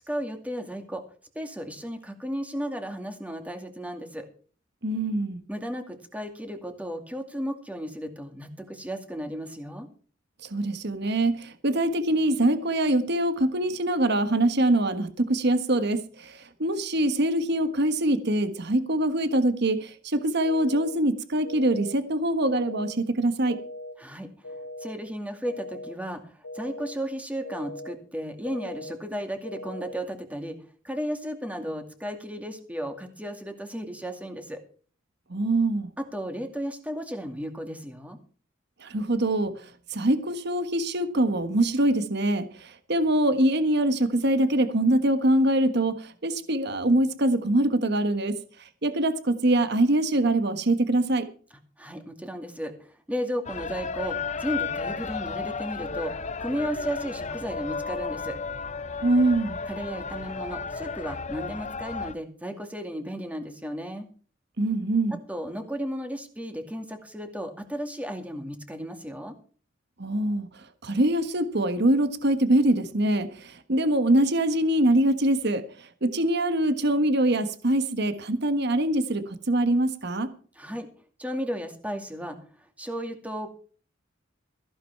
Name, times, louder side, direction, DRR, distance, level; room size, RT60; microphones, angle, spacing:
voice 1, 0.1-1.0 1.3-4.3 5.5-9.9 24.0-24.3 24.8-30.6 30.8-34.6 36.0-38.2 51.8-58.4 59.7-64.1 65.1-69.4 80.5-80.9 81.2-83.5, equal, 10° right, 2.3 m, -34 dB
voice 2, 4.8-5.4 10.5-23.6 35.3-35.9 38.8-39.5 39.9-48.3 48.8-51.3 59.0-59.6 64.6-65.2 70.0-70.5 70.8-80.3, right 1 dB, 60° right, 1.4 m, -24 dB
sound 1, 20.4-20.9 21.4-21.9 22.4-22.9 23.4-23.9 24.4-24.9 25.4-25.9 26.4-26.9 27.4-27.9 28.4-28.9 29.4-29.9, left 1 dB, 85° left, 1.8 m, -39 dB
sound 2, 53.4-62.1, left 5 dB, 35° left, 0.7 m, -33 dB
15.0 x 11.0 x 4.7 m
head